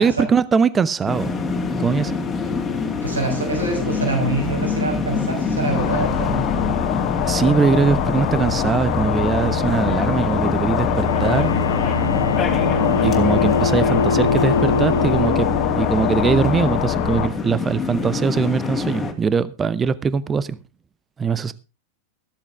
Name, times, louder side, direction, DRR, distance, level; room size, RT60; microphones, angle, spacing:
voice 1, 0.0-1.3 1.8-2.2 7.2-11.5 13.0-20.6 21.2-21.5, right 5 dB, 20° right, 0.8 m, -21 dB
sound 1, 1.1-19.1, left 4 dB, 20° left, 2.5 m, -26 dB
voice 2, 3.0-6.7, right 2 dB, 75° right, 5.5 m, -25 dB
sound 2, 5.7-17.3, left 9 dB, 45° left, 1.7 m, -23 dB
Bowed string instrument, 10.8-16.1, left 3 dB, 75° left, 0.6 m, -23 dB
14.5 x 13.0 x 3.4 m
figure-of-eight pair, 90°, 0 cm